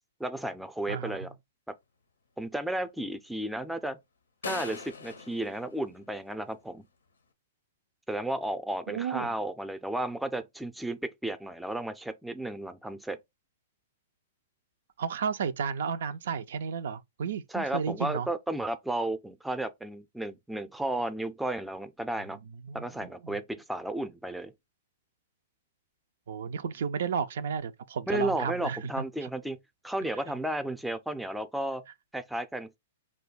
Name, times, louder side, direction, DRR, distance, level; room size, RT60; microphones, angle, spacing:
voice 1, 0.2-1.3 2.4-4.0 4.4-6.8 8.1-13.2 17.5-22.4 22.7-24.5 28.1-29.6 29.8-31.8 32.1-32.8, right 1 dB, 5° right, 0.4 m, -33 dB
voice 2, 0.9-1.3 8.9-9.3 15.0-18.3 22.7-22.8 23.2-23.4 26.3-29.3, right 6 dB, 70° right, 0.3 m, -33 dB
sound 1, 4.4-6.6, left 4 dB, 85° left, 0.6 m, -41 dB
2.7 x 2.2 x 3.8 m
hypercardioid pair, 120°, 0 cm